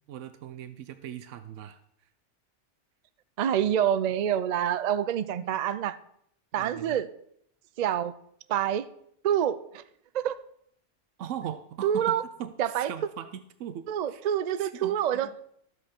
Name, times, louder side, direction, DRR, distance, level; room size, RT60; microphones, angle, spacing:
voice 1, 0.0-1.8 5.4-5.5 6.6-7.0 11.2-14.2 14.6-15.4, right 9 dB, 90° right, 11 dB, 1.0 m, -40 dB
voice 2, 3.4-6.0 6.5-7.1 7.8-8.2 8.5-8.9 9.2-9.8 10.1-10.4 11.8-12.2 12.6-12.9 13.9-15.3, right 10 dB, 70° right, 14 dB, 0.4 m, -27 dB
12.5 x 7.9 x 4.3 m, 0.71 s
omnidirectional pair, 1.2 m